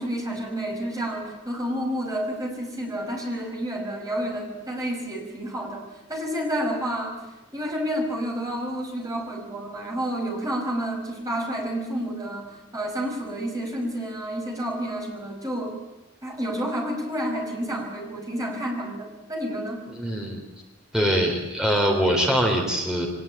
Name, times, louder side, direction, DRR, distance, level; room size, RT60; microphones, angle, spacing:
voice 1, 0.0-5.8 6.1-7.2 7.5-15.8 16.2-19.8, equal, 20° right, 0 dB, 5.7 m, -30 dB
voice 2, 19.9-20.4 20.9-23.1, equal, 5° right, 1 dB, 3.6 m, -23 dB
24.0 x 19.5 x 8.9 m, 1.0 s
head